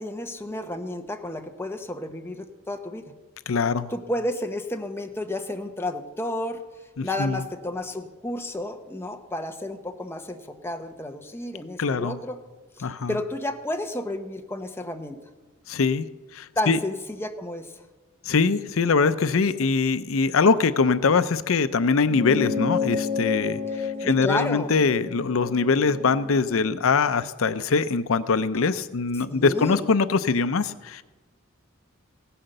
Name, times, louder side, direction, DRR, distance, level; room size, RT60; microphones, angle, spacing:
voice 1, 0.0-3.0 3.9-6.6 7.0-12.4 12.8-15.2 16.6-17.7 23.7-24.7 29.3-29.9, left 1 dB, 10° left, 5 dB, 1.0 m, -31 dB
voice 2, 3.5-3.9 7.0-7.4 11.8-12.2 12.8-13.1 15.7-16.1 16.3-16.8 18.2-31.0, left 4 dB, 80° left, 13 dB, 0.6 m, -23 dB
sound 1, 22.0-26.8, left 5 dB, 85° right, 2.3 m, -30 dB
16.5 x 10.0 x 6.6 m, 1.2 s
head